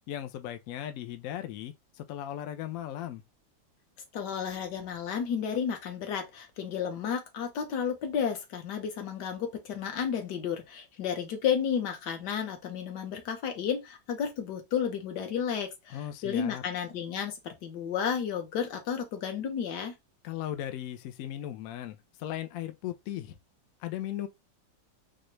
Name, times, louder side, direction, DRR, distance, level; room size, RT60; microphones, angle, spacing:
voice 1, 0.1-3.2 15.9-16.6 20.2-23.4 23.8-24.3, left 12 dB, 85° left, 0.7 m, -37 dB
voice 2, 4.1-16.0 16.2-19.9, left 7 dB, 65° left, 1.4 m, -32 dB
4.2 x 2.2 x 3.0 m
omnidirectional pair, 2.1 m